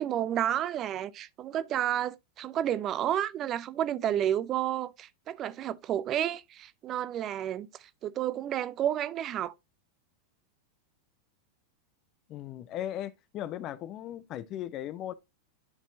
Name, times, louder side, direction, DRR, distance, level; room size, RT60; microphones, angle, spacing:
voice 1, 0.0-7.7 8.0-9.5, right 11 dB, 30° right, 0.5 m, -31 dB
voice 2, 12.3-15.1, left 12 dB, 35° left, 0.5 m, -37 dB
11.0 x 4.3 x 2.6 m
figure-of-eight pair, 90°, 0 cm